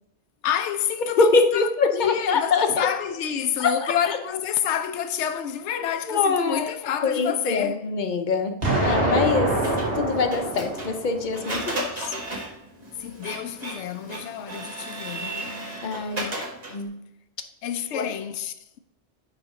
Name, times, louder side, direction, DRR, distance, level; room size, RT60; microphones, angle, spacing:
voice 1, 0.4-7.8 13.0-15.5 16.2-16.6 17.6-18.8, left 9 dB, 85° left, 0.9 m, -29 dB
voice 2, 1.2-2.9 3.6-3.9 6.1-6.7 7.0-8.5 8.8-9.6 9.9-12.1 15.8-16.3 16.7-17.0 17.9-18.1, left 4 dB, 50° left, 0.8 m, -23 dB
Explosion, 8.6-11.6, right 2 dB, 60° right, 2.0 m, -25 dB
Printer, 9.6-16.9, right 2 dB, 35° right, 1.5 m, -35 dB
9.5 x 3.4 x 4.8 m
omnidirectional pair, 1.2 m